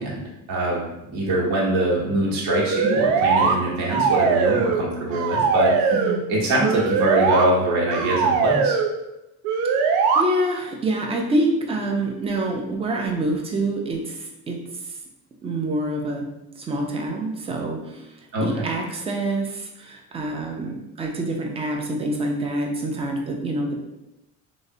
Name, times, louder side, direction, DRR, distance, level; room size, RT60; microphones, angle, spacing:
voice 1, 0.0-5.9 6.3-8.8 18.3-18.6, right 1 dB, 75° right, -4 dB, 1.1 m, -23 dB
sound 1, 2.5-3.6 3.9-4.8 5.1-6.2 6.6-7.4 7.9-8.9 9.4-10.2, right 5 dB, 90° right, 0.5 m, -21 dB
voice 2, 5.9-6.3 9.9-14.9 15.4-16.3 16.6-18.1 18.4-23.7, right 1 dB, 20° right, 1 dB, 0.3 m, -26 dB
3.7 x 2.0 x 2.6 m, 0.93 s
cardioid pair, 140°, 35 cm